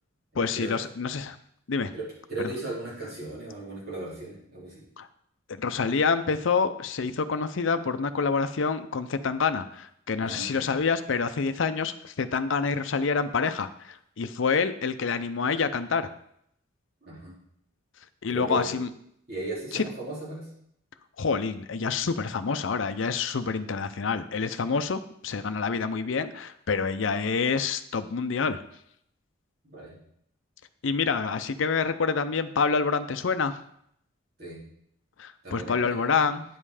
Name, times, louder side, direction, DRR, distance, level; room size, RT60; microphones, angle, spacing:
voice 1, 0.3-1.4 1.7-1.9 2.4-2.5 5.0-5.1 5.5-16.1 18.2-18.9 19.7-19.9 21.2-28.6 30.8-33.6 35.2-36.4, left 5 dB, 70° left, 10 dB, 0.5 m, -27 dB
voice 2, 2.3-4.9 10.2-10.8 17.0-17.3 18.3-18.8 19.3-20.5 22.0-22.1 29.6-29.9 34.4-34.6 35.4-36.0, right 2 dB, 50° right, -6 dB, 3.6 m, -37 dB
9.5 x 5.5 x 4.9 m, 0.71 s
head